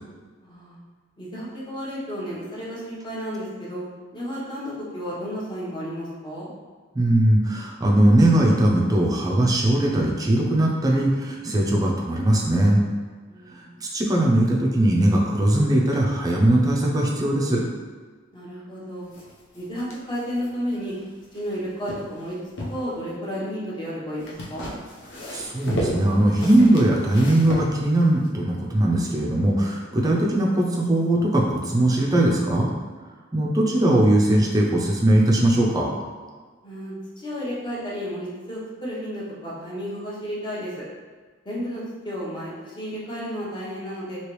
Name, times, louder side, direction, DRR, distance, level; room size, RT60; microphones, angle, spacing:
voice 1, 0.4-0.8 1.2-3.8 4.1-6.5 13.3-13.8 18.3-19.1 19.5-20.9 21.3-24.7 36.6-40.7 41.4-44.2, equal, 25° left, -7 dB, 0.9 m, -32 dB
voice 2, 6.9-12.8 13.8-17.7 25.3-32.7 33.3-35.9, right 1 dB, 20° right, -3 dB, 0.5 m, -20 dB
sound 1, 19.1-21.5 21.8-22.8 24.2-28.3, equal, 65° left, 0.7 m, -33 dB
3.2 x 2.9 x 3.0 m, 1.5 s
head